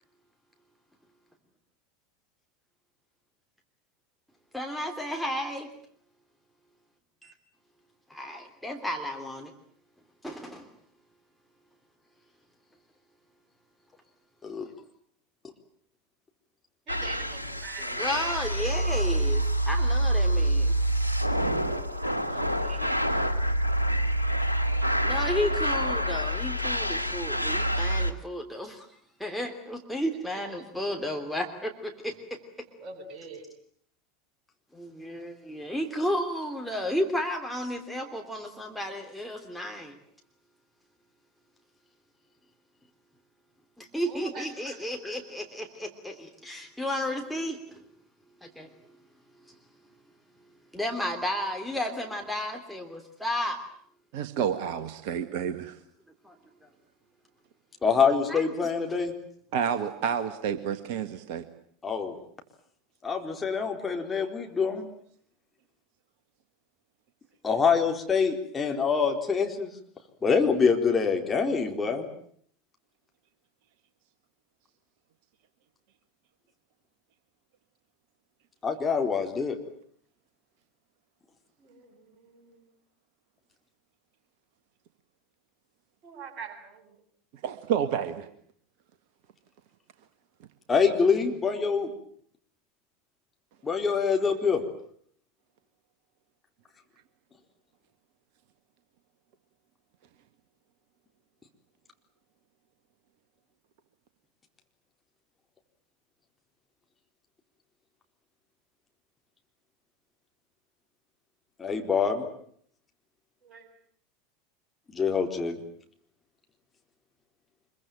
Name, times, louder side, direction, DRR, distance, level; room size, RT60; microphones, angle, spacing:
voice 1, 4.5-5.7 7.2-7.3 8.1-9.5 10.2-10.7 18.0-20.8 25.0-28.9 29.2-32.4 34.7-40.0 43.8-47.8 48.4-48.7 49.5-49.6 50.7-53.6 56.2-56.3 58.3-58.7, equal, ahead, 2 dB, 3.2 m, -33 dB
voice 2, 16.9-18.1 22.2-22.9 30.3-30.6 32.7-33.5 43.9-44.8 81.6-82.7 86.0-87.0 113.4-113.7, right 5 dB, 35° right, 4 dB, 7.8 m, -45 dB
sound 1, 16.9-28.1, right 1 dB, 85° right, 1.9 m, -26 dB
voice 3, 54.1-55.8 59.5-61.4 87.4-88.3, right 8 dB, 55° right, 9 dB, 1.7 m, -29 dB
voice 4, 57.8-59.1 61.8-62.1 63.0-64.9 67.4-69.7 70.2-72.1 78.6-79.6 90.7-91.9 93.6-94.6 111.6-112.2 114.9-115.6, left 5 dB, 20° left, 3 dB, 4.1 m, -25 dB
25.5 x 23.5 x 9.1 m, 0.63 s
figure-of-eight pair, 80°, 0 cm